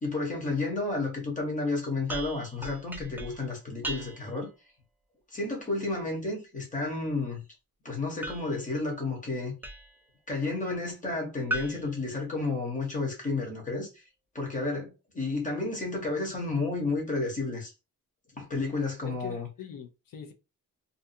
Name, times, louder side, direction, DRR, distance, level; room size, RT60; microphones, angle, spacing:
voice 1, 0.0-4.5 5.3-7.4 7.8-9.5 10.3-14.0 14.3-17.7 18.4-19.5, left 3 dB, 25° left, 1.0 m, -31 dB
sound 1, 2.1-4.5 8.2-10.1 11.5-13.0, right 1 dB, 5° right, 0.3 m, -39 dB
voice 2, 19.1-20.3, left 8 dB, 85° left, 0.6 m, -43 dB
2.7 x 2.3 x 2.6 m
wide cardioid pair, 170°, 33 cm